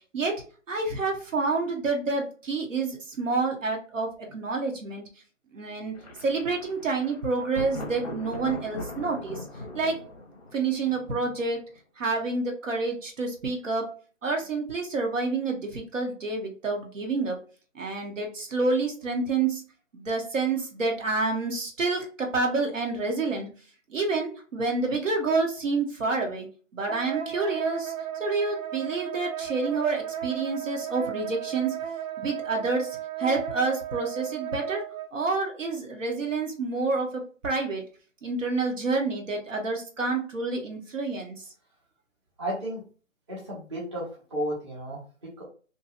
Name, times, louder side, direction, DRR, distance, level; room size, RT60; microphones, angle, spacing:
voice 1, 0.1-5.0 5.5-6.0 6.2-9.5 9.7-10.0 10.5-11.7 12.0-13.9 14.2-17.4 17.7-19.6 19.9-23.5 23.9-26.5 26.7-27.9 28.2-31.7 32.2-34.8 35.1-37.8 38.2-41.3, right 3 dB, 70° right, 2 dB, 0.9 m, -28 dB
Thunder, 5.9-11.8, left 2 dB, 30° left, 0.6 m, -40 dB
Wind instrument woodwind instrument, 26.9-35.1, right 10 dB, 90° right, 0.6 m, -35 dB
voice 2, 42.4-42.8 43.3-45.4, equal, 20° right, -5 dB, 0.7 m, -33 dB
2.7 x 2.3 x 2.3 m, 0.38 s
figure-of-eight pair, 150°, 40 cm